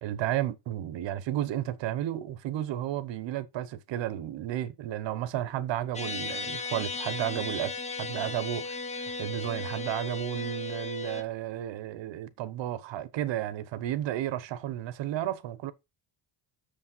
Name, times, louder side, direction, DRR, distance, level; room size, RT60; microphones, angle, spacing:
voice 1, 0.0-7.7 8.0-15.7, right 12 dB, 75° right, 1.0 m, -33 dB
sound 1, 5.9-11.2, left 3 dB, 15° left, 0.9 m, -36 dB
6.7 x 5.2 x 5.5 m
cardioid pair, 155°, 44 cm